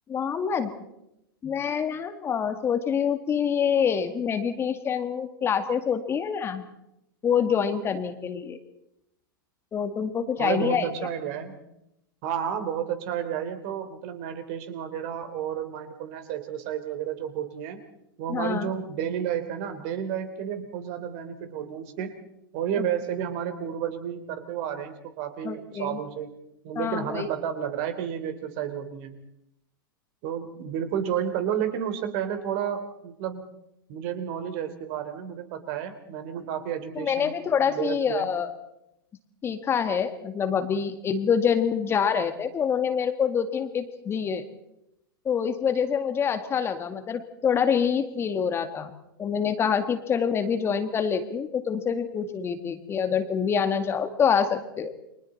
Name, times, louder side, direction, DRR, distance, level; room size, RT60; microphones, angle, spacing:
voice 1, 0.1-0.8 1.4-6.7 7.2-8.6 9.7-10.9 18.3-18.7 25.4-26.0 26.8-27.3 37.0-38.5 39.4-44.5 45.3-48.9 49.2-54.9, left 7 dB, 20° left, 8 dB, 1.8 m, -26 dB
voice 2, 10.4-11.6 12.2-17.8 18.2-22.2 22.5-26.3 26.6-29.2 30.2-33.4 33.9-37.4 37.7-38.3, right 9 dB, 45° right, 9 dB, 3.1 m, -31 dB
30.0 x 24.0 x 4.2 m, 0.82 s
figure-of-eight pair, 95°, 12 cm